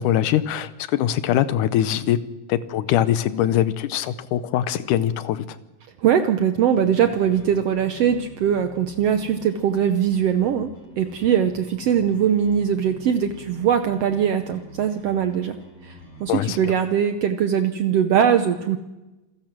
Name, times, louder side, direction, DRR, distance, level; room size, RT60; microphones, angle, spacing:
voice 1, 0.0-2.2 2.5-5.6 16.3-16.7, left 11 dB, 75° left, 13 dB, 2.2 m, -22 dB
voice 2, 6.0-10.7 11.0-15.6 15.8-18.8, right 8 dB, 85° right, 8 dB, 1.4 m, -21 dB
sound 1, 6.7-16.3, equal, 45° left, 5.3 m, -45 dB
27.0 x 15.5 x 6.1 m, 1.0 s
omnidirectional pair, 3.9 m